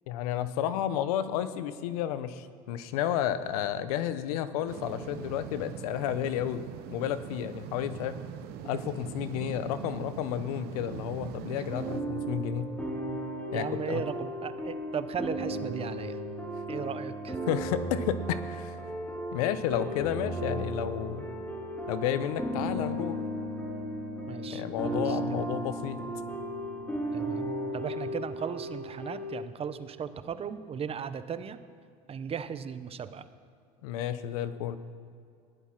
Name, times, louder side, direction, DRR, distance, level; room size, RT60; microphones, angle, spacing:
voice 1, 0.1-8.1 8.6-12.7 13.5-14.0 17.5-18.8 19.3-21.3 21.9-23.2 24.5-26.0 33.8-34.8, left 10 dB, 80° left, 13 dB, 0.9 m, -31 dB
sound 1, 4.7-12.0, right 10 dB, 60° right, 1.0 m, -42 dB
sound 2, 11.7-29.4, right 1 dB, 5° left, 3.5 m, -35 dB
voice 2, 13.5-16.2 16.7-17.4 24.3-25.4 27.1-31.6 32.1-33.2, right 7 dB, 30° right, 12 dB, 0.9 m, -37 dB
16.0 x 11.0 x 5.9 m, 2.4 s
supercardioid pair, 95°, 19 cm